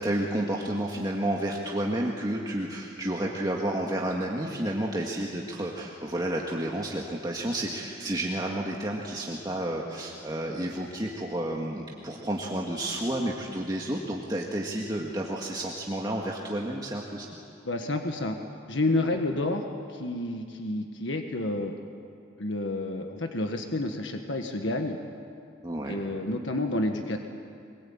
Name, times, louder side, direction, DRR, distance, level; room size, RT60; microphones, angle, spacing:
voice 1, 0.0-17.3 19.0-19.2 25.6-26.0, right 1 dB, 20° right, -2 dB, 1.8 m, -31 dB
voice 2, 17.6-18.4 18.7-19.6 19.9-21.8 22.4-25.0 25.9-27.2, left 2 dB, 75° left, 4 dB, 1.6 m, -29 dB
24.0 x 22.5 x 8.8 m, 2.4 s
head